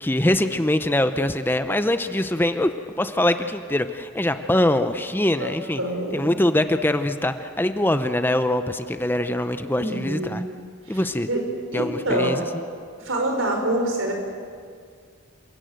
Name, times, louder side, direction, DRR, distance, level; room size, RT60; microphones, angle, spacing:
voice 1, 0.0-5.8 6.1-10.4 10.9-11.3 11.7-12.4, left 1 dB, 10° left, 9 dB, 0.6 m, -23 dB
voice 2, 5.8-6.3 9.8-10.4 10.9-11.0 11.3-11.4 11.7-12.4 13.0-14.1, right 1 dB, 85° right, 3 dB, 4.8 m, -26 dB
28.0 x 17.0 x 7.9 m, 2.1 s
head